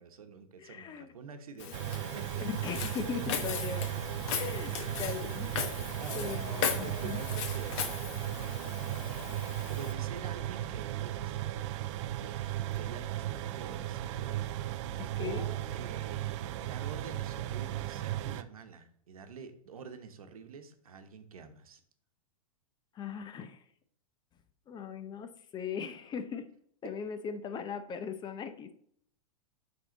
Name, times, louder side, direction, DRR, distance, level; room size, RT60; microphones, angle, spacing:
voice 1, 0.0-1.7 2.0-3.5 3.8-5.0 6.0-6.4 6.8-8.0 8.3-8.8 9.6-11.4 12.7-14.7 15.1-21.8, right 6 dB, 85° right, 7 dB, 1.0 m, -47 dB
voice 2, 0.6-1.1 2.4-4.0 4.3-5.5 6.1-7.2 12.3-12.5 15.0-15.5 22.9-23.6 24.7-26.5 26.8-28.7, left 6 dB, 25° left, 9 dB, 0.7 m, -39 dB
Walk footsteps, 1.6-9.9, left 7 dB, 55° left, 1.2 m, -38 dB
sound 1, 1.7-18.4, right 13 dB, 55° right, 0.5 m, -36 dB
Breathing, 6.1-11.0, left 7 dB, 85° left, 0.8 m, -52 dB
9.1 x 3.8 x 3.9 m, 0.64 s
hypercardioid pair, 120°, 18 cm